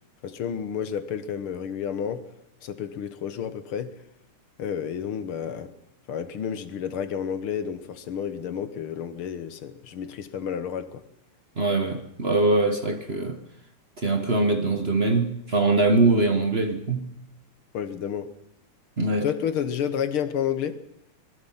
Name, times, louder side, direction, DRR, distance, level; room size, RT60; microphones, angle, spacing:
voice 1, 0.2-2.3 2.6-4.0 4.6-5.7 6.1-11.0 17.7-18.3 19.2-20.8, left 8 dB, 75° left, 2.1 m, -30 dB
voice 2, 11.6-13.4 14.0-17.1 19.0-19.3, right 2 dB, 35° right, 1.3 m, -22 dB
25.0 x 21.0 x 5.8 m
omnidirectional pair, 2.4 m